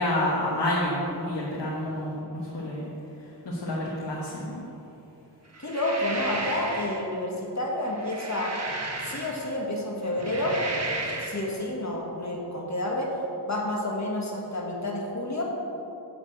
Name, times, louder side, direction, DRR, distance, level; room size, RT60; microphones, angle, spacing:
voice 1, 0.0-2.9 3.4-4.6, left 1 dB, 80° left, -5 dB, 1.4 m, -29 dB
sound 1, 5.5-7.0 7.8-9.6 10.1-11.5, right 2 dB, 40° right, 1.4 m, -34 dB
voice 2, 5.6-8.5 9.0-10.6 11.0-13.1 13.5-15.4, left 1 dB, 40° left, -2 dB, 1.5 m, -29 dB
7.1 x 6.2 x 7.5 m, 2.9 s
wide cardioid pair, 90°, 41 cm